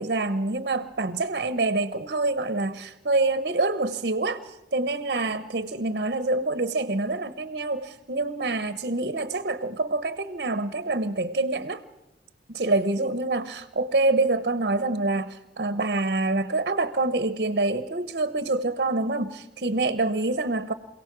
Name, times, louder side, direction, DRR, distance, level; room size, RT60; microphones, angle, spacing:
voice 1, 0.0-11.8 12.5-20.7, right 2 dB, 55° right, 12 dB, 1.0 m, -26 dB
28.0 x 17.5 x 6.1 m, 0.97 s
head